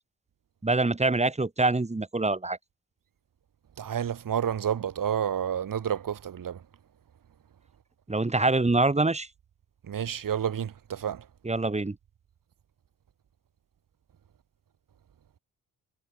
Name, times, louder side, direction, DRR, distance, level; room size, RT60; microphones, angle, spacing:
voice 1, 0.6-2.6 8.1-9.3 11.4-11.9, right 2 dB, 15° right, 1.5 m, -25 dB
voice 2, 3.8-6.6 9.9-11.2, right 9 dB, 60° right, 1.9 m, -30 dB
supercardioid pair, 55°, 38 cm